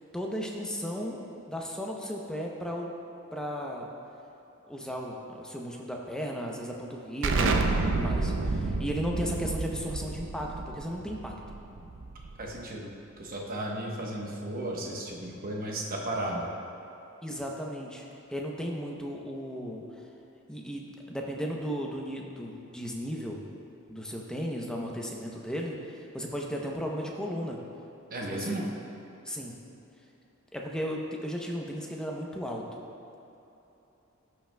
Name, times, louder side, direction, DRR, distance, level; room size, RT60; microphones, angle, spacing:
voice 1, 0.1-2.9 3.3-3.9 4.7-11.3 17.2-18.0 18.3-19.8 20.5-23.4 23.9-27.6 28.2-28.6 29.2-29.6 30.5-32.8, equal, 5° left, -1 dB, 0.6 m, -35 dB
Explosion, 7.2-12.6, right 3 dB, 60° right, 0.5 m, -30 dB
voice 2, 12.4-16.5 28.1-28.7, right 1 dB, 40° right, -1 dB, 1.0 m, -34 dB
14.0 x 5.8 x 2.2 m, 2.9 s
head